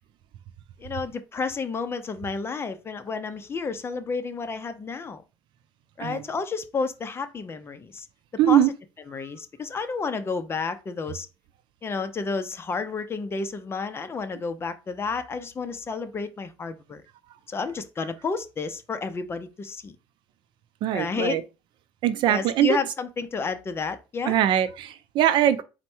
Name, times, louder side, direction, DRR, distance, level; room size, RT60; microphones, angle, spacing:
voice 1, 0.8-5.2 6.0-8.1 8.5-8.6 9.1-11.3 11.8-17.0 17.5-19.9 20.9-21.4 22.3-24.4, left 4 dB, 30° left, 0.5 m, -31 dB
voice 2, 8.4-8.7 20.8-21.4 22.0-22.8 24.3-25.6, right 11 dB, 65° right, 0.5 m, -21 dB
4.3 x 2.1 x 4.4 m
cardioid pair, 105°, 9 cm